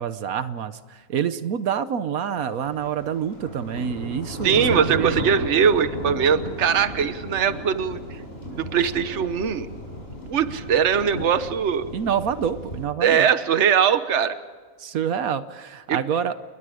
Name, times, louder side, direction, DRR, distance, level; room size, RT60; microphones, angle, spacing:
voice 1, 0.0-5.2 11.9-13.3 14.8-16.4, right 8 dB, 80° right, 12 dB, 1.3 m, -27 dB
sound 1, 2.6-12.9, equal, 45° left, 5.9 m, -34 dB
voice 2, 4.4-8.0 8.5-9.7 10.3-11.9 13.0-14.3 15.9-16.0, right 7 dB, 55° right, 11 dB, 1.3 m, -21 dB
29.5 x 22.5 x 5.0 m, 1.6 s
omnidirectional pair, 1.5 m